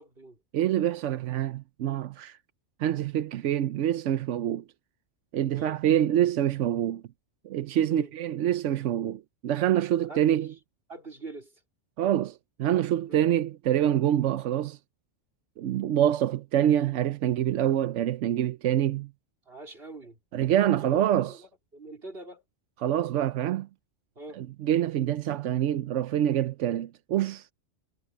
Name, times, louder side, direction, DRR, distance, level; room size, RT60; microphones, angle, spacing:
voice 1, 0.0-0.4 5.5-5.8 7.9-8.1 10.1-10.4 10.9-11.6 19.5-20.2 20.8-22.4 24.2-24.4, right 2 dB, 55° right, 4.3 m, -43 dB
voice 2, 0.5-2.4 2.8-4.6 5.3-7.0 7.4-10.5 12.0-14.8 15.6-19.1 20.3-21.4 22.8-23.7 24.4-27.5, right 11 dB, 90° right, 1.0 m, -26 dB
omnidirectional pair, 1.2 m